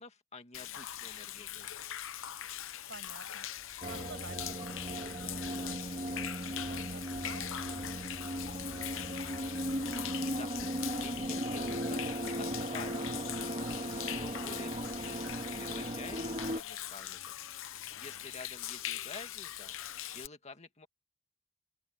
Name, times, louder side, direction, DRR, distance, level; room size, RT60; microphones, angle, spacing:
voice 1, 0.0-1.7 10.2-10.5 10.8-13.0 13.3-15.3 15.6-17.4 17.9-19.8 20.1-20.9, left 3 dB, 30° left, 2.1 m, -49 dB
Human voice / Rain / Stream, 0.5-20.3, left 12 dB, 60° left, 0.8 m, -42 dB
voice 2, 2.9-9.5, right 3 dB, 55° right, 5.8 m, -53 dB
sound 1, 3.8-16.6, right 1 dB, 30° right, 1.8 m, -37 dB
open air
head